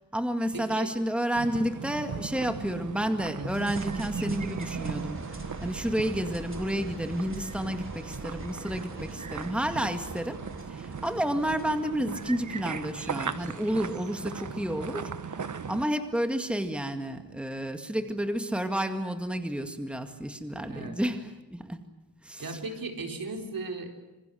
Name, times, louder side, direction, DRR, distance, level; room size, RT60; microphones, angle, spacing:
voice 1, 0.0-10.4 10.7-15.1 15.7-21.8 22.2-22.6, right 1 dB, 5° right, 7 dB, 2.1 m, -31 dB
voice 2, 0.5-0.9 3.4-3.7 20.7-21.0 22.4-23.9, right 3 dB, 75° right, 4 dB, 4.3 m, -36 dB
sound 1, 1.3-15.9, right 6 dB, 55° right, 1.2 m, -38 dB
sound 2, 3.5-14.7, right 2 dB, 35° right, 4.1 m, -44 dB
26.5 x 26.5 x 7.9 m, 1.0 s
wide cardioid pair, 100°, 35 cm